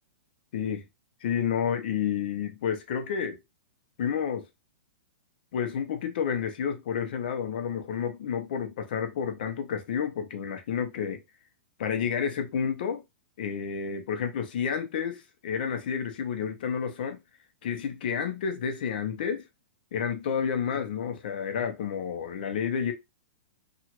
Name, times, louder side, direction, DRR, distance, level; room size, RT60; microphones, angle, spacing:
voice 1, 0.5-0.8 1.2-3.4 4.0-4.4 5.5-11.2 11.8-13.0 13.4-17.2 17.6-19.4 19.9-22.9, left 7 dB, 45° left, 0.6 m, -30 dB
2.9 x 2.4 x 2.9 m
hypercardioid pair, 175°, 7 cm